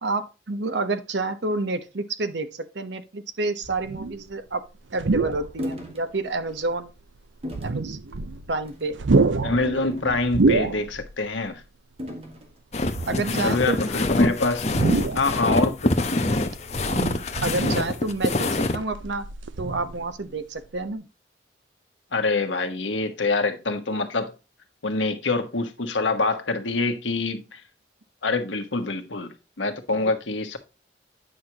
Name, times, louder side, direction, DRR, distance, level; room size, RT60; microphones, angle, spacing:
voice 1, 0.0-4.6 4.9-6.9 7.6-8.0 8.5-9.0 13.1-13.8 16.9-19.3 19.6-21.1, right 2 dB, 70° right, 1.0 m, -29 dB
sound 1, 3.6-4.3 4.9-5.7 6.3-6.4 7.4-8.6 8.9-11.2 11.5-11.6 12.8-13.7 14.7-15.6 16.7-18.0 18.5-20.2 20.6-20.8, right 3 dB, 90° right, 0.6 m, -26 dB
sound 2, 5.6-6.0 6.5-6.7 7.4-7.8 8.6-8.9 9.6-10.5 12.0-12.5, left 1 dB, 30° right, 1.6 m, -35 dB
voice 2, 9.4-11.6 13.4-14.6 15.1-16.0 22.1-24.3 24.8-27.6 28.2-30.6, left 3 dB, 90° left, 1.3 m, -25 dB
sound 3, 12.7-18.8, left 2 dB, 35° left, 0.8 m, -25 dB
9.2 x 6.1 x 2.9 m
head